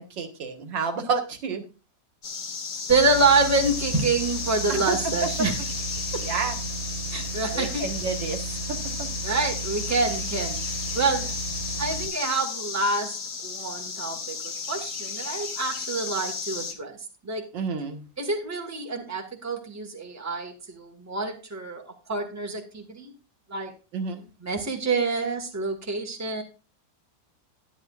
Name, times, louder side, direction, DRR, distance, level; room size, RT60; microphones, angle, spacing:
voice 1, 0.0-1.6 4.7-5.3 6.2-6.6 7.5-9.1 17.5-18.1 23.9-24.2, right 5 dB, 75° right, 6 dB, 2.3 m, -30 dB
sound 1, 2.2-16.7, left 5 dB, 60° left, 2.0 m, -33 dB
voice 2, 2.9-5.6 6.1-6.2 7.1-7.9 9.2-11.3 11.8-13.1 13.4-17.0 17.2-17.5 18.2-21.8 22.1-23.1 23.5-23.7 24.4-26.4, right 3 dB, 10° right, 3 dB, 1.6 m, -27 dB
sound 2, 2.9-12.1, right 5 dB, 50° right, 2.1 m, -35 dB
11.5 x 11.0 x 2.4 m, 0.30 s
omnidirectional pair, 2.0 m